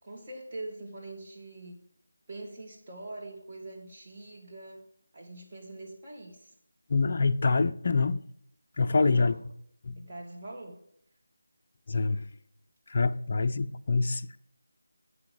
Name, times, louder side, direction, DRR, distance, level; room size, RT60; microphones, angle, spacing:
voice 1, 0.0-1.8 2.3-4.8 5.1-6.5 8.8-9.4 10.0-10.8, right 2 dB, 25° right, 2.0 m, -43 dB
voice 2, 6.9-8.2 8.8-9.3 9.8-10.0 11.9-12.2 12.9-14.4, left 4 dB, 40° left, 0.4 m, -26 dB
8.0 x 5.8 x 7.0 m
figure-of-eight pair, 165°, 0 cm